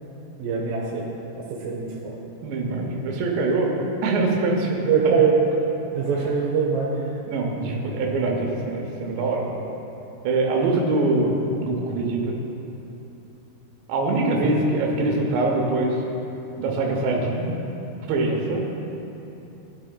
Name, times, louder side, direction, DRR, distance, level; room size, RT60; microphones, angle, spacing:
voice 1, 0.4-1.1 1.6-2.2 4.9-5.4 5.9-6.9 14.4-14.5, right 6 dB, 70° right, -4 dB, 2.2 m, -22 dB
voice 2, 2.4-3.7 4.0-4.8 7.3-9.5 10.2-12.4 13.9-16.0 16.6-17.5 18.1-18.7, right 2 dB, 85° right, -1 dB, 3.1 m, -23 dB
15.0 x 10.0 x 2.3 m, 3.0 s
omnidirectional pair, 4.9 m